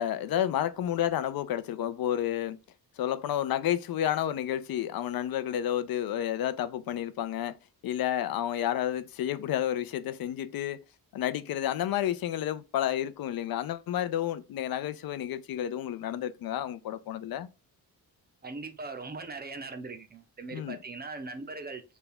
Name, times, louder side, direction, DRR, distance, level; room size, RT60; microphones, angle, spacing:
voice 1, 0.0-2.6 3.0-7.6 7.8-10.8 11.1-17.5 20.5-20.8, left 11 dB, 70° left, 0.5 m, -30 dB
voice 2, 18.4-21.8, right 3 dB, 25° right, 0.5 m, -40 dB
3.5 x 2.3 x 4.2 m
wide cardioid pair, 155°, 37 cm